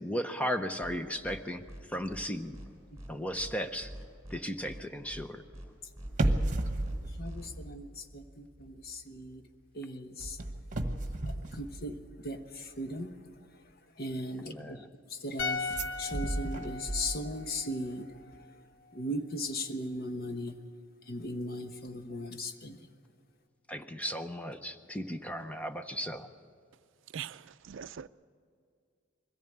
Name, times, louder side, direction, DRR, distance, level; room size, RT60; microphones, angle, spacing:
voice 1, 0.0-1.6 1.9-2.6 3.1-3.9 4.3-5.4 14.5-14.9 23.7-26.3, equal, 5° left, 0.6 m, -35 dB
sound 1, 0.8-1.0 1.2-1.4 1.7-1.8 2.1-2.2 2.5-2.7 3.0-3.1 3.4-3.5 3.8-4.4 4.7-4.8 5.1-5.2 5.5-5.7 6.0-6.1 6.4-6.5 6.8-7.0 7.2-7.5, equal, 15° right, 4.0 m, -45 dB
sound 2, 6.0-8.3 8.6-8.9 10.2-12.4 15.7-17.6 17.9-18.0, right 1 dB, 40° right, 1.2 m, -34 dB
voice 2, 7.2-9.4 9.7-10.4 11.5-12.0 12.2-13.1 14.0-14.8 15.2-15.7 16.0-18.1 18.9-20.5 21.1-22.8, left 1 dB, 50° left, 1.2 m, -37 dB
sound 3, 15.4-18.6 18.9-19.0, left 4 dB, 80° left, 0.8 m, -39 dB
voice 3, 27.1-28.1, right 8 dB, 65° right, 0.4 m, -42 dB
21.5 x 14.5 x 8.7 m
head